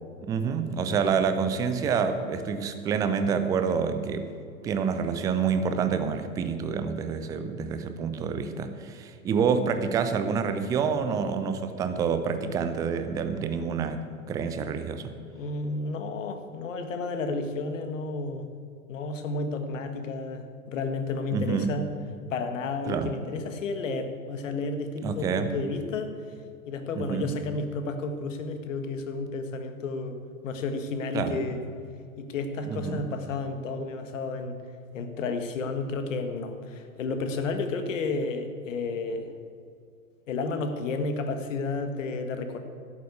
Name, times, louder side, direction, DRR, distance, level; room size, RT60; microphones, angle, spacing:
voice 1, 0.2-4.3 4.6-14.0 14.3-15.1 21.3-21.7 22.9-23.1 25.0-25.5 27.0-27.3 31.1-31.4 32.7-33.0, right 6 dB, 10° right, 9 dB, 0.4 m, -27 dB
voice 2, 15.2-18.5 18.9-21.9 22.3-26.2 26.7-31.6 32.2-34.6 34.9-39.3 40.3-42.6, left 3 dB, 60° left, 7 dB, 1.6 m, -32 dB
11.5 x 8.3 x 8.3 m, 2.4 s
figure-of-eight pair, 100°, 43 cm